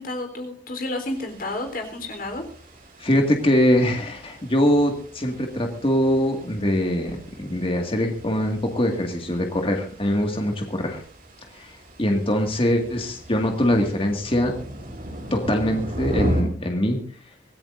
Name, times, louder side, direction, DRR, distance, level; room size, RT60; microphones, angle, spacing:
voice 1, 0.0-2.4, left 2 dB, 50° left, 4 dB, 3.8 m, -31 dB
sound 1, 1.1-16.4, equal, 50° right, 4.6 m, -36 dB
voice 2, 3.0-11.0 11.5-11.7 12.0-14.5 15.3-17.0, equal, 30° left, 3 dB, 2.0 m, -23 dB
25.0 x 16.0 x 2.6 m, 0.42 s
head